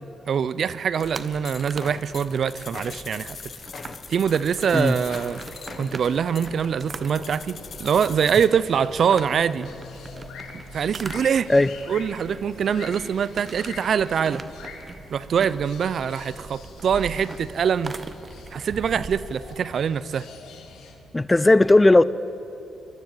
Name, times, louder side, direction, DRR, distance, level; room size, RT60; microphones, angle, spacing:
voice 1, 0.3-3.4 4.1-5.4 5.8-9.7 10.7-11.5 11.9-14.4 15.1-17.9 18.5-20.3, right 7 dB, 65° right, 17 dB, 0.6 m, -24 dB
sound 1, 1.0-8.5, left 6 dB, 55° left, 1.1 m, -41 dB
sound 2, 1.0-19.6, right 4 dB, 40° right, 1.2 m, -42 dB
sound 3, 4.5-21.0, left 5 dB, 80° left, 2.5 m, -45 dB
voice 2, 21.1-22.0, left 2 dB, 20° left, 17 dB, 0.7 m, -16 dB
22.0 x 13.5 x 9.1 m, 2.9 s
supercardioid pair, 60°, 0 cm